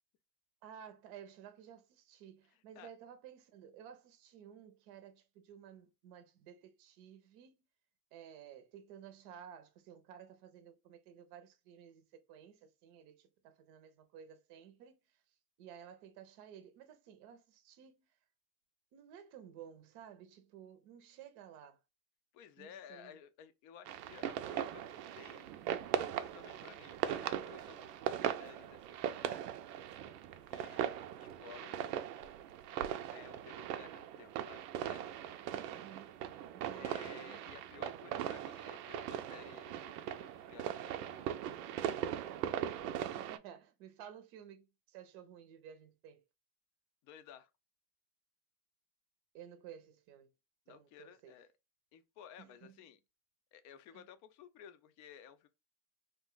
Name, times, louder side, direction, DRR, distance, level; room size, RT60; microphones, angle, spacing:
voice 1, 0.6-7.6 8.1-15.0 15.6-18.1 18.9-21.8 22.6-23.2 35.5-36.2 36.5-36.9 43.2-46.2 49.3-50.3 50.7-51.3 52.4-52.8 53.9-54.0, right 9 dB, 50° right, 0.6 m, -54 dB
voice 2, 2.5-2.9 22.3-24.9 25.2-25.5 26.2-29.5 30.5-32.2 33.1-35.4 36.7-41.3 47.0-47.5 50.7-51.5 51.9-53.0 53.5-55.5, left 8 dB, 40° left, 0.4 m, -56 dB
sound 1, 23.9-43.4, right 10 dB, 90° right, 0.6 m, -40 dB
2.5 x 2.2 x 3.7 m
supercardioid pair, 125°, 46 cm